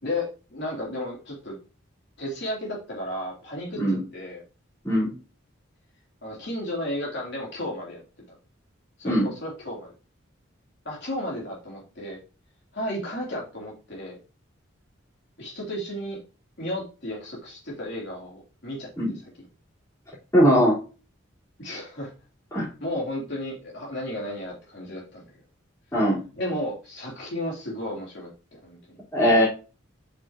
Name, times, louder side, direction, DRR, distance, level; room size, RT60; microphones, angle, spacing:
voice 1, 0.0-1.6 2.2-4.4 6.2-8.0 9.0-9.1 9.4-9.9 10.8-12.2 12.7-14.2 15.4-16.2 16.6-18.9 21.6-22.1 22.8-25.4 26.4-29.0, left 1 dB, 55° left, -3 dB, 3.3 m, -33 dB
voice 2, 20.3-20.8 22.5-22.7 25.9-26.2 29.1-29.5, equal, 15° left, -7 dB, 4.0 m, -20 dB
8.3 x 6.7 x 3.0 m, 0.33 s
head